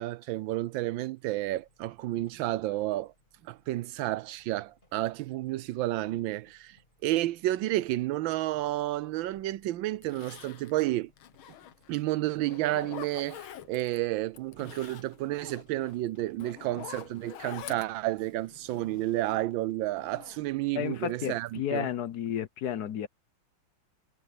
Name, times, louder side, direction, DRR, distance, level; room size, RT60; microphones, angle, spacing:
voice 1, 0.0-3.1 3.4-6.8 7.0-11.1 11.9-21.9, right 16 dB, 75° right, 1.3 m, -31 dB
sound 1, 1.4-21.2, left 1 dB, 20° left, 7.5 m, -66 dB
Zipper (clothing), 9.4-9.5 10.0-12.0 12.4-14.0 14.3-19.5 19.9-21.1 21.5-21.9 22.3-22.4, left 11 dB, 85° left, 1.8 m, -47 dB
voice 2, 20.7-23.1, left 10 dB, 60° left, 1.2 m, -32 dB
omnidirectional pair, 2.2 m